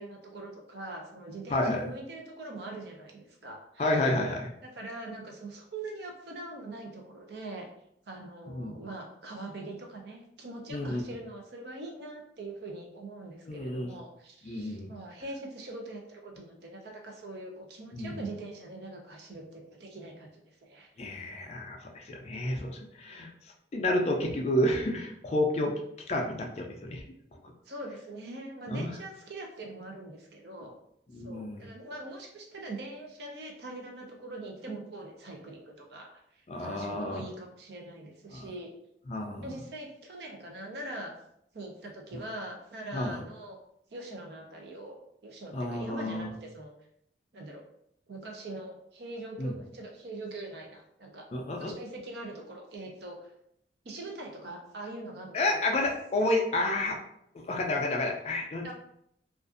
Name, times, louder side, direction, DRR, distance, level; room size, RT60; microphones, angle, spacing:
voice 1, 0.0-4.1 4.6-7.7 8.1-20.3 20.6-20.9 27.7-30.7 31.2-36.1 36.6-38.7 39.4-41.1 41.5-43.6 43.9-46.7 47.3-47.6 48.1-51.3 51.5-53.2 53.8-55.6 58.6-58.7, right 2 dB, 65° right, 1 dB, 0.6 m, -42 dB
voice 2, 1.5-1.8 3.8-4.5 8.5-8.8 10.7-11.1 13.5-13.9 14.4-14.9 17.9-18.2 21.0-23.3 23.7-25.7 26.1-27.0 28.7-28.9 31.1-31.7 36.5-37.2 38.3-38.4 39.1-39.5 42.9-43.2 45.5-46.3 49.4-49.5 51.3-51.7 55.3-57.0 57.5-58.7, left 1 dB, 35° left, 1 dB, 0.3 m, -30 dB
2.4 x 2.4 x 2.4 m, 0.73 s
head